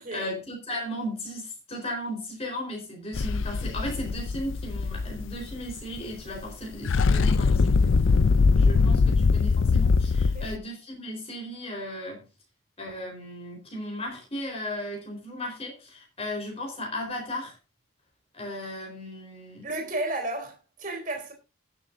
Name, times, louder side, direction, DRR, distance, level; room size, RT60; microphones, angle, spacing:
voice 1, 0.0-7.9 8.5-12.3 12.8-17.6 18.3-19.7, left 1 dB, 30° left, 4.1 m, -36 dB
sound 1, 3.1-6.0 6.3-6.5 6.7-10.6, left 4 dB, 70° left, 0.5 m, -22 dB
voice 2, 19.6-21.3, right 2 dB, 40° right, 3.2 m, -33 dB
20.5 x 7.0 x 2.6 m
head